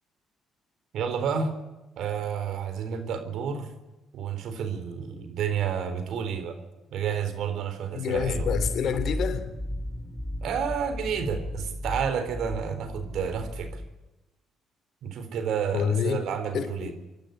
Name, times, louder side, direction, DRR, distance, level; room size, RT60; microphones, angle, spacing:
voice 1, 0.9-1.5 2.0-3.7 4.1-6.6 6.9-8.5 10.4-13.8 15.0-16.9, right 7 dB, 70° right, 4.1 m, -30 dB
voice 2, 7.9-9.5 15.7-16.2 16.5-16.9, left 7 dB, 65° left, 2.8 m, -27 dB
sound 1, 8.1-13.9, left 1 dB, 20° left, 4.7 m, -34 dB
27.5 x 12.0 x 10.0 m
supercardioid pair, 60°, 0 cm